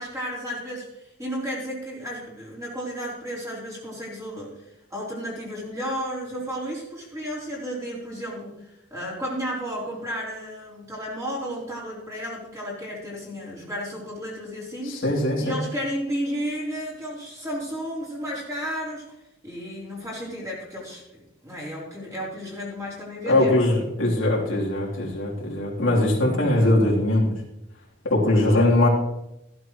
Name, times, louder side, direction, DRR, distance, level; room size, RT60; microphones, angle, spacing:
voice 1, 0.0-4.5 4.9-15.0 15.4-19.1 19.4-23.5, equal, 15° right, -5 dB, 3.8 m, -33 dB
voice 2, 14.9-15.6 23.3-27.3 28.0-28.9, left 1 dB, 80° left, -4 dB, 3.4 m, -21 dB
15.0 x 12.0 x 3.2 m, 0.89 s
head